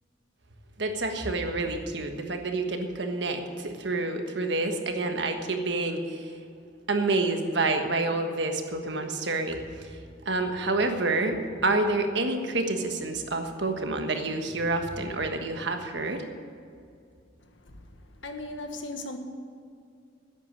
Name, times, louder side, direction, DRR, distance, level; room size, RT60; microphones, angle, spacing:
voice 1, 0.8-6.3 6.9-9.9 10.2-16.2, right 2 dB, 65° right, 5 dB, 1.4 m, -28 dB
voice 2, 18.2-19.2, left 2 dB, 80° left, 5 dB, 1.4 m, -37 dB
10.5 x 8.4 x 9.6 m, 2.4 s
head